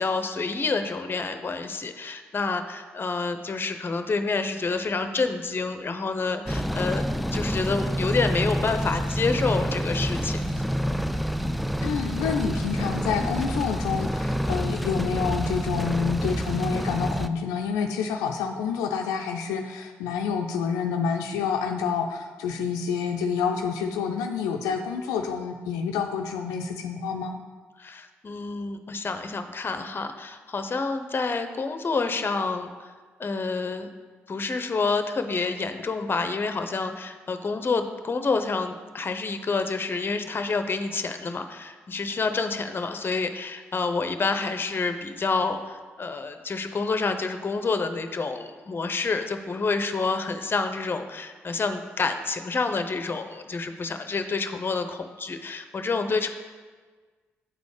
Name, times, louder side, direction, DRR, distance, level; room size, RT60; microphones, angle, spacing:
voice 1, 0.0-10.4 27.8-32.9 33.2-33.9 34.3-56.3, left 4 dB, 40° left, 8 dB, 0.7 m, -28 dB
sound 1, 6.5-17.3, equal, ahead, 0.4 m, -28 dB
voice 2, 11.8-27.4, left 6 dB, 85° left, 4 dB, 0.4 m, -28 dB
8.9 x 4.1 x 4.9 m, 1.4 s
supercardioid pair, 50°, 6 cm